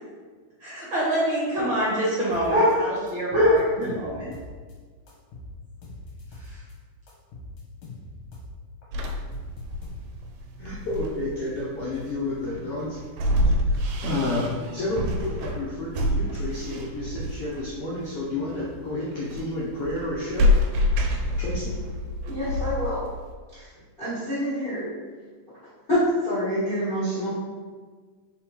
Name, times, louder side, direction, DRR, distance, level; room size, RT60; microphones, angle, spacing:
voice 1, 0.6-4.3 6.4-6.6, equal, 70° right, -8 dB, 1.2 m, -23 dB
sound 1, 2.3-2.7 3.1-4.7 5.1-6.7 7.1-8.6 8.8-10.3, left 2 dB, 65° left, 1.6 m, -42 dB
sound 2, 8.9-23.3, left 1 dB, 90° right, 2.1 m, -27 dB
voice 2, 10.6-13.0 13.6-20.5 21.4-21.7, left 2 dB, 85° left, -8 dB, 1.3 m, -30 dB
voice 3, 22.3-23.0 23.5-23.7 24.0-24.9 25.9-27.3, equal, 40° left, -11 dB, 0.7 m, -26 dB
4.3 x 3.9 x 3.0 m, 1.5 s
omnidirectional pair, 3.6 m